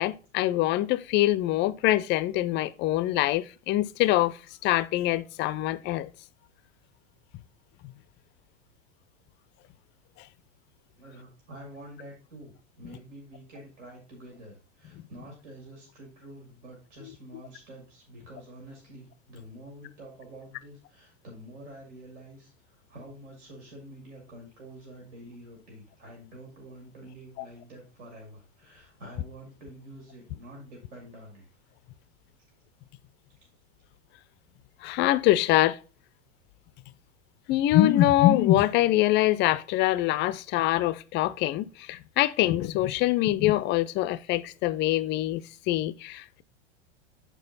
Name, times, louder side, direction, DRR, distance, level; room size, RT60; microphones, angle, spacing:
voice 1, 0.0-6.1 34.8-35.8 37.5-45.4 45.7-46.4, left 15 dB, 30° left, 0.4 m, -24 dB
voice 2, 11.0-31.5, right 1 dB, 70° right, 2.5 m, -47 dB
6.8 x 4.5 x 4.0 m
hypercardioid pair, 95°, 36 cm